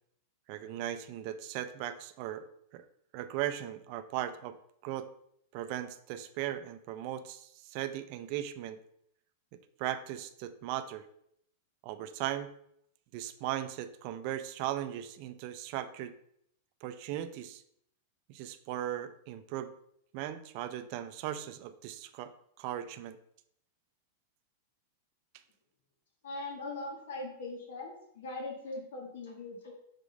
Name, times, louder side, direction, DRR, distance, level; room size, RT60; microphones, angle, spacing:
voice 1, 0.5-2.4 2.7-2.9 3.1-4.6 4.8-5.1 5.5-8.8 9.8-11.1 11.8-12.5 13.1-16.1 16.8-17.6 18.3-19.7 20.1-22.3 22.6-23.2, right 12 dB, 35° right, 9 dB, 0.4 m, -37 dB
voice 2, 26.2-29.7, left 2 dB, 80° left, 0 dB, 1.6 m, -40 dB
5.0 x 3.6 x 5.1 m, 0.72 s
supercardioid pair, 175°, 0 cm